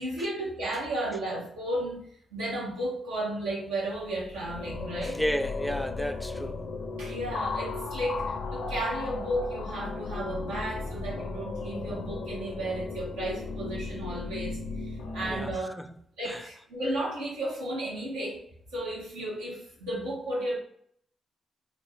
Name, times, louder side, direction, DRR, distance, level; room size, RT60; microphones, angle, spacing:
voice 1, 0.0-5.2 7.0-14.6 14.8-15.8 16.2-18.4 18.7-20.6, right 1 dB, 90° right, 1.1 m, -33 dB
sound 1, 4.0-15.5, left 3 dB, 70° left, 0.4 m, -35 dB
voice 2, 5.0-6.6 15.3-15.5 15.8-15.9 16.3-16.4, equal, ahead, 0.3 m, -32 dB
2.5 x 2.4 x 3.4 m
hypercardioid pair, 45°, 0 cm